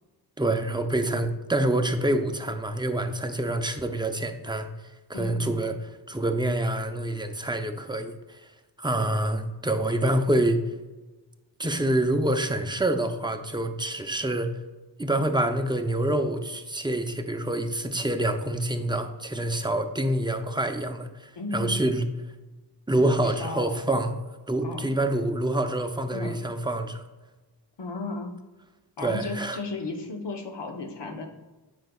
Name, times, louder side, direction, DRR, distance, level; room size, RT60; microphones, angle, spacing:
voice 1, 0.4-4.7 5.1-5.7 6.1-8.1 8.8-10.6 11.6-14.5 15.0-22.0 22.9-24.2 24.5-27.0 29.0-29.6, right 1 dB, 10° right, 6 dB, 0.5 m, -26 dB
voice 2, 5.1-5.6 21.4-21.8 23.2-23.7 24.6-24.9 26.1-26.4 27.8-28.3 29.0-31.3, left 3 dB, 75° left, 3 dB, 1.0 m, -34 dB
7.7 x 5.3 x 2.3 m, 1.2 s
wide cardioid pair, 65°, 42 cm